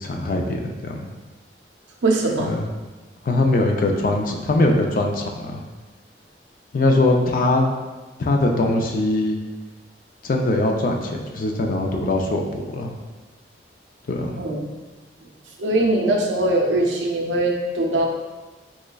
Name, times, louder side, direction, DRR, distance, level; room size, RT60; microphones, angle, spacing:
voice 1, 0.0-1.1 2.4-2.6 3.3-5.6 6.7-7.7 8.2-9.4 10.2-12.9 14.1-14.3, left 2 dB, 50° left, 2 dB, 0.4 m, -21 dB
voice 2, 2.0-2.5 14.4-14.6 15.6-18.1, right 2 dB, 90° right, 0 dB, 0.5 m, -21 dB
3.6 x 3.1 x 2.3 m, 1.2 s
head